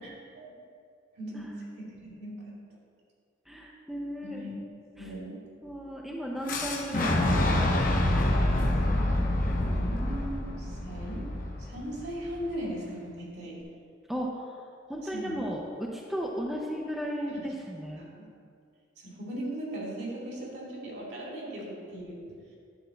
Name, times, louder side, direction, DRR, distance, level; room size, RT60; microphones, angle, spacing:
voice 1, 1.2-2.6 4.2-4.5 5.0-5.4 9.7-11.3 11.6-13.6 15.1-15.4 17.3-17.4 18.0-18.3 19.0-22.3, right 1 dB, 60° right, -3 dB, 2.3 m, -38 dB
voice 2, 3.5-4.5 5.6-7.9 14.1-18.0, equal, ahead, -2 dB, 0.6 m, -35 dB
Fire / Explosion, 6.5-12.4, left 1 dB, 45° left, 0.9 m, -27 dB
10.5 x 3.7 x 7.4 m, 2.3 s
head